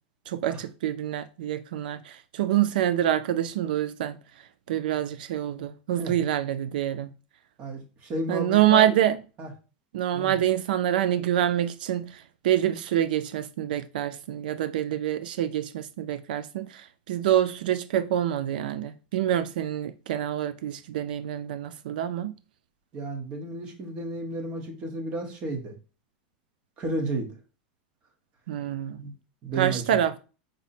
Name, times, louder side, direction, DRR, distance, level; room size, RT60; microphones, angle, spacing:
voice 1, 0.3-7.1 8.3-9.2 9.9-22.3 28.5-29.0 29.6-30.2, right 11 dB, 85° right, 0.3 m, -26 dB
voice 2, 7.6-8.9 9.4-9.5 10.1-10.4 22.9-25.7 26.8-27.3 29.0-29.1 29.4-29.8, right 2 dB, 25° right, 0.8 m, -32 dB
4.9 x 2.1 x 4.0 m
supercardioid pair, 175°, 5 cm